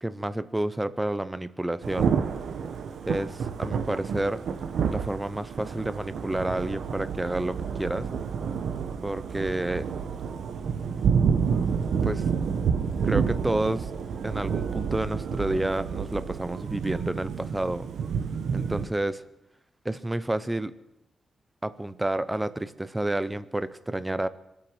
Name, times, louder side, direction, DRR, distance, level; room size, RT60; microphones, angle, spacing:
voice 1, 0.0-2.1 3.0-4.4 4.9-8.1 9.0-9.9 12.0-12.3 13.0-13.9 14.2-17.9 18.5-19.2 19.8-20.7 21.6-24.3, right 1 dB, 10° right, 15 dB, 0.7 m, -30 dB
Thunder / Rain, 1.8-18.9, right 6 dB, 80° right, 1.2 m, -29 dB
25.5 x 8.7 x 6.2 m, 0.90 s
cardioid pair, 115°, 0 cm